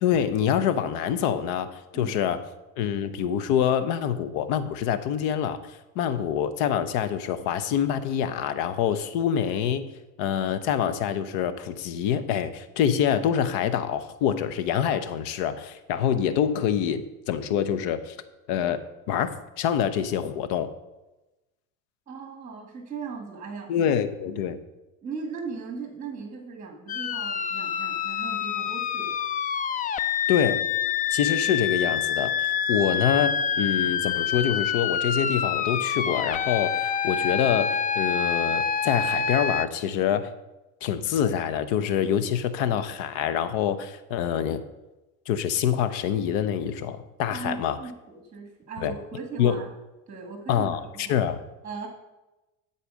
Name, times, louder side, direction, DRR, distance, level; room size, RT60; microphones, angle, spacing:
voice 1, 0.0-2.4 2.8-9.9 10.2-18.2 18.5-20.7 23.7-24.6 30.3-30.6 31.1-32.4 32.7-40.3 40.8-44.6 45.3-47.8 48.8-48.9 49.4-49.6 50.5-50.8 51.1-51.4, left 9 dB, 75° left, 12 dB, 0.8 m, -26 dB
voice 2, 22.1-23.7 25.0-29.2 47.3-49.7 50.1-51.3 51.6-51.9, right 5 dB, 20° right, 3 dB, 1.8 m, -38 dB
sound 1, 26.9-39.7, left 7 dB, 25° left, 0.3 m, -27 dB
12.0 x 4.3 x 6.3 m, 1.0 s
supercardioid pair, 110°, 36 cm